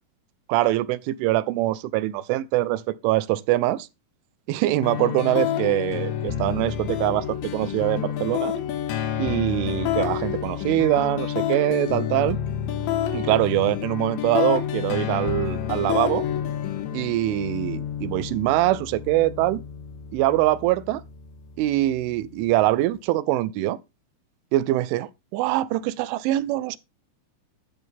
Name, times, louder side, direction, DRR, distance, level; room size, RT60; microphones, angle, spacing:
voice 1, 0.5-3.9 4.5-8.5 9.2-12.4 13.1-16.2 16.9-19.6 20.1-21.0 21.6-23.8 24.5-26.8, right 15 dB, 90° right, 3.2 m, -23 dB
sound 1, 4.8-22.8, left 10 dB, 75° left, 3.8 m, -29 dB
12.0 x 10.5 x 3.5 m
omnidirectional pair, 5.5 m